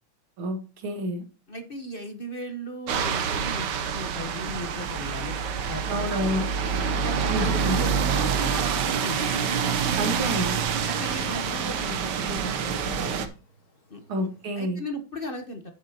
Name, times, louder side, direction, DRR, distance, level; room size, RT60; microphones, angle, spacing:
voice 1, 0.4-1.2 5.9-6.4 7.3-7.8 10.0-10.6 14.1-14.8, equal, 85° right, 5 dB, 2.6 m, -29 dB
voice 2, 1.5-5.3 5.7-10.1 10.8-13.2 13.9-14.3 14.6-15.7, equal, 35° left, 6 dB, 1.0 m, -37 dB
sound 1, 2.9-13.3, right 6 dB, 60° right, 1.5 m, -27 dB
sound 2, 5.4-14.7, left 3 dB, 80° left, 3.4 m, -52 dB
10.5 x 8.1 x 2.9 m, 0.32 s
omnidirectional pair, 2.2 m